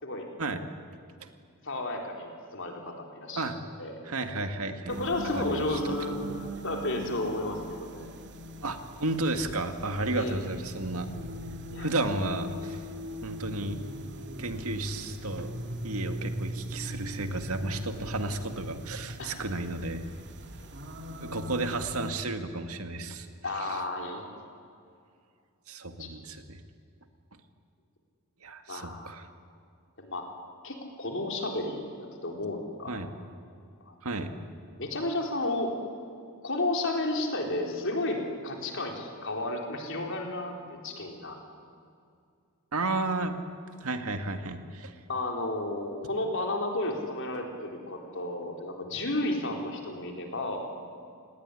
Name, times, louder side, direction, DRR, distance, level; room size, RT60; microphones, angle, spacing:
voice 1, 1.6-3.4 3.8-4.0 4.9-8.1 10.1-10.4 11.7-11.9 19.2-19.4 20.6-20.7 23.4-24.3 26.0-26.1 28.7-29.1 30.0-30.3 30.6-33.0 33.9-34.0 34.8-35.7 36.4-41.4 45.1-50.7, left 2 dB, 60° left, 2 dB, 4.2 m, -32 dB
voice 2, 4.0-5.0 5.4-6.0 6.2-6.3 8.6-11.1 11.8-12.8 13.2-13.8 14.4-15.5 15.8-20.1 21.2-23.8 25.7-26.6 28.4-29.2 32.9-33.1 34.0-34.3 42.7-43.3 43.8-44.9, right 2 dB, 75° right, 7 dB, 2.0 m, -33 dB
Content warning, 4.9-22.1, equal, 55° right, 2.3 m, -40 dB
29.0 x 19.0 x 10.0 m, 2.3 s
head